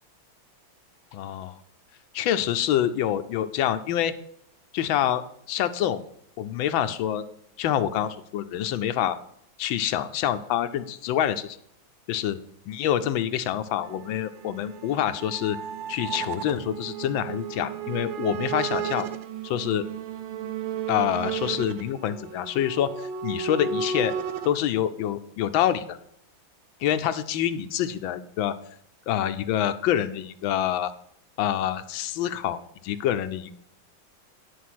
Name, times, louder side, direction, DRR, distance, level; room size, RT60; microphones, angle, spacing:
voice 1, 1.1-1.5 2.1-4.1 4.7-5.2 5.5-6.0 6.4-7.2 7.6-9.2 9.6-11.6 12.1-12.4 12.7-15.6 15.9-19.0 19.4-19.9 20.9-24.1 24.4-26.0 26.8-28.5 29.1-30.9 31.4-33.5, left 11 dB, 80° left, 11 dB, 1.4 m, -26 dB
sound 1, 13.8-24.5, right 7 dB, 75° right, 1.4 m, -33 dB
10.0 x 4.8 x 6.0 m, 0.71 s
omnidirectional pair, 2.1 m